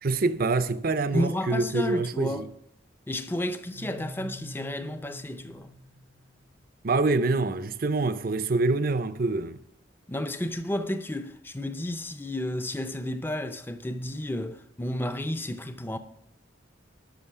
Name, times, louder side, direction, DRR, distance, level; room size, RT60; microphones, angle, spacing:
voice 1, 0.0-2.5 6.8-9.6, right 3 dB, 45° right, 0.5 m, -26 dB
voice 2, 1.1-2.5 3.1-5.7 10.1-16.0, left 1 dB, 10° left, 0.6 m, -32 dB
sound 1, 3.6-6.5, equal, 75° right, 0.9 m, -44 dB
13.0 x 6.2 x 4.8 m
head